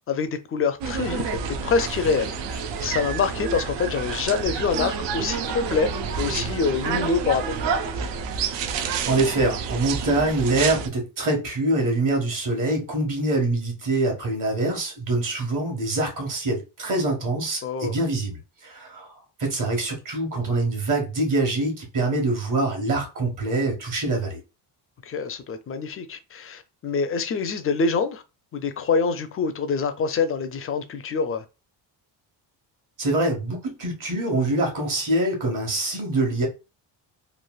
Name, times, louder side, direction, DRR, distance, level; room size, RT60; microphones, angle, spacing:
voice 1, 0.1-1.3 1.6-5.9 6.1-7.6 17.6-17.9 25.1-28.2 28.5-31.4, left 5 dB, 35° left, 0.4 m, -25 dB
sound 1, 0.8-10.9, right 6 dB, 75° right, 0.6 m, -29 dB
voice 2, 9.1-19.1 19.4-24.4 33.0-36.5, right 2 dB, 45° right, 1.3 m, -24 dB
3.2 x 2.5 x 2.3 m
cardioid pair, 125°, 43 cm